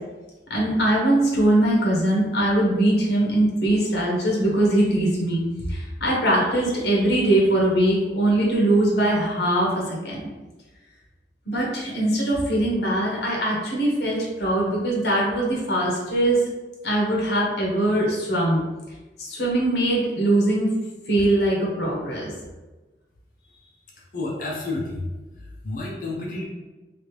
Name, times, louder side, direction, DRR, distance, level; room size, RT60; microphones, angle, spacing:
voice 1, 0.5-5.4 5.7-10.2 11.5-16.4 16.8-18.6 19.2-20.7 21.1-22.3, right 1 dB, 65° left, -3 dB, 1.0 m, -21 dB
voice 2, 24.0-25.1 25.3-26.4, left 2 dB, 50° left, -3 dB, 0.6 m, -31 dB
3.1 x 2.6 x 3.2 m, 1.2 s
head